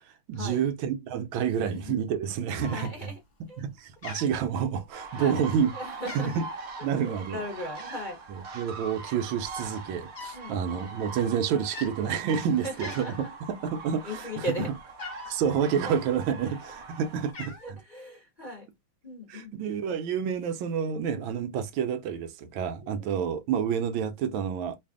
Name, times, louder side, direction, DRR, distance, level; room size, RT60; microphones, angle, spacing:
voice 1, 0.0-3.1 3.6-5.7 6.1-6.4 6.8-7.4 8.3-13.1 13.5-14.5 15.2-17.8 19.3-24.8, right 7 dB, 80° right, 1.3 m, -29 dB
Cat, 2.6-3.2 3.5-3.8 4.0-5.0 5.5-5.7 5.9-6.6 7.8-8.2 9.0-9.1 9.3-10.5 10.7-11.0 11.6-12.0 12.4-12.5 12.8-13.3 13.7-15.4 16.2-16.8 17.0-17.7, left 4 dB, 60° left, 0.4 m, -43 dB
voice 2, 2.6-3.2 3.5-3.6 5.2-5.4 5.7-6.3 7.0-8.2 10.3-10.6 12.6-13.3 14.0-14.7 15.8-16.0 16.4-16.6 17.6-18.7 19.0-19.6 22.8-23.3, left 1 dB, 35° left, 0.8 m, -37 dB
sound 1, 4.9-17.3, right 4 dB, 55° right, 1.1 m, -42 dB
3.3 x 2.4 x 3.6 m
omnidirectional pair, 2.3 m